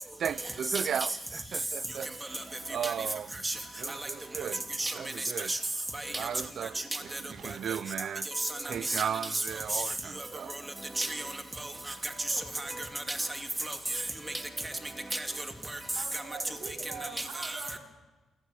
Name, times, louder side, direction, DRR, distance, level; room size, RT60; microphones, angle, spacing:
voice 1, 0.2-1.1 1.5-2.1 2.7-3.3 3.8-4.6 5.0-5.5 6.2-6.8 7.4-8.3 8.6-10.5, right 8 dB, 65° right, 0.6 m, -35 dB
voice 2, 5.9-6.3 6.8-7.2 8.4-9.4 9.7-9.8 11.0-11.3 11.6-11.7 12.0-14.0 14.6-14.7 15.1-15.8 16.1-16.2 17.2-17.8, right 2 dB, 15° right, 2.7 m, -34 dB
voice 3, 15.9-17.8, right 6 dB, 80° right, 4.8 m, -43 dB
28.5 x 11.5 x 8.8 m
cardioid pair, 80°, 0 cm